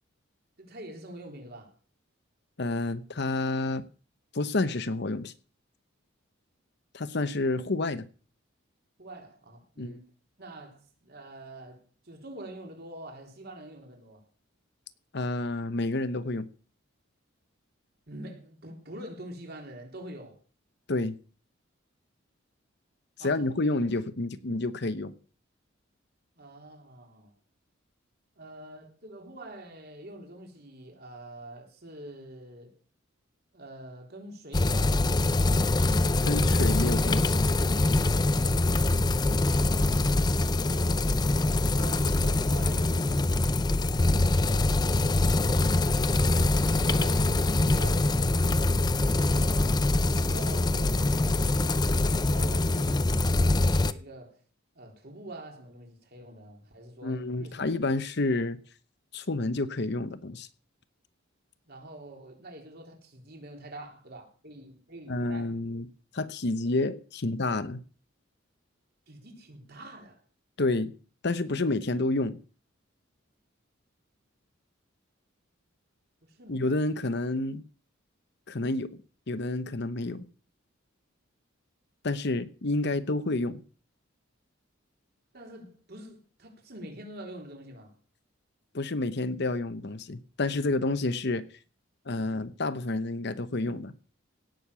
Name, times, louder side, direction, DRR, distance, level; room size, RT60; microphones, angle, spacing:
voice 1, 0.6-1.7 9.0-10.1 10.4-14.3 18.1-20.4 23.2-23.6 26.4-27.3 28.4-32.8 33.5-35.1 41.7-45.1 46.7-49.8 50.2-54.4 54.8-57.5 61.7-65.5 69.1-70.2 76.2-76.7 76.9-77.0 85.3-88.0 92.1-92.3, right 1 dB, 50° right, 3.7 m, -46 dB
voice 2, 2.6-3.8 4.3-5.3 6.9-8.1 9.8-10.0 15.1-16.5 20.9-21.2 23.2-25.1 36.2-37.5 57.0-58.6 59.1-60.5 65.1-65.9 66.1-67.8 70.6-70.9 71.2-72.4 76.5-77.6 78.5-79.0 79.3-80.2 82.0-83.6 88.7-91.5 92.1-93.9, left 2 dB, 55° left, 0.9 m, -29 dB
sound 1, 34.5-53.9, left 2 dB, 20° left, 0.5 m, -24 dB
17.0 x 6.6 x 7.0 m
head